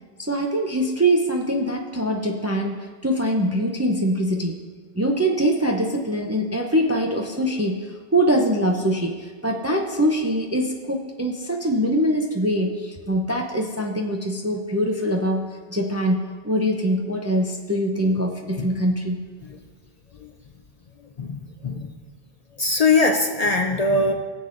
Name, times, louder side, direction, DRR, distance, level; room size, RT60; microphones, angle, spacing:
voice 1, 0.2-4.6 5.0-19.2, equal, 20° right, 1 dB, 0.5 m, -23 dB
voice 2, 21.2-21.9 22.6-24.1, left 3 dB, 45° left, 4 dB, 0.6 m, -21 dB
17.5 x 7.4 x 2.6 m, 1.5 s
omnidirectional pair, 1.0 m